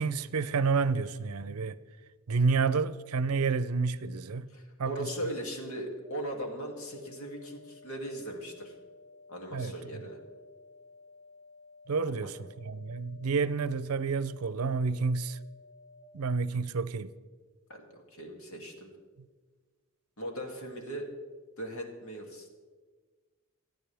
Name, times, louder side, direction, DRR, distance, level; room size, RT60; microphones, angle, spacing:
voice 1, 0.0-1.8 2.3-4.5 4.8-5.1 9.5-9.7 11.9-15.4 16.1-17.1, right 4 dB, 85° right, 0.6 m, -29 dB
voice 2, 4.5-8.7 9.3-10.2 12.0-12.3 17.7-18.9 20.2-21.1 21.6-22.5, right 1 dB, 75° left, 2.6 m, -39 dB
sound 1, 6.0-16.0, left 3 dB, 5° right, 4.6 m, -55 dB
28.0 x 9.5 x 3.5 m
head